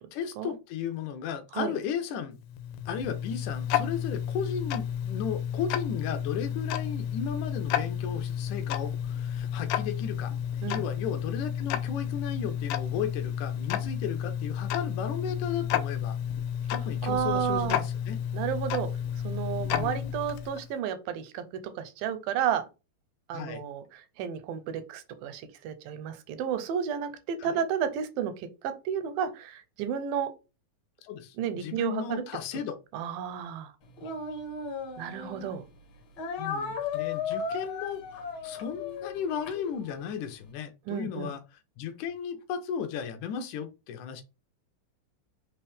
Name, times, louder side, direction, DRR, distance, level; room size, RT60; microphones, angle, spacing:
voice 1, 0.1-2.4 2.9-16.2 16.7-18.2 19.7-20.1 23.3-23.6 27.4-27.6 31.0-32.8 36.4-41.4 41.8-44.2, left 7 dB, 75° left, 2.0 m, -35 dB
Tick-tock, 2.4-20.7, left 9 dB, 90° left, 2.4 m, -31 dB
voice 2, 17.0-17.8 18.3-18.9 19.2-21.4 21.8-22.6 23.3-23.8 24.2-30.3 31.4-32.2 32.9-33.7 35.0-35.6 40.9-41.3, right 8 dB, 85° right, 2.3 m, -32 dB
Speech, 34.0-35.5 36.2-40.2, left 5 dB, 55° left, 2.1 m, -36 dB
5.2 x 3.0 x 3.4 m
omnidirectional pair, 4.1 m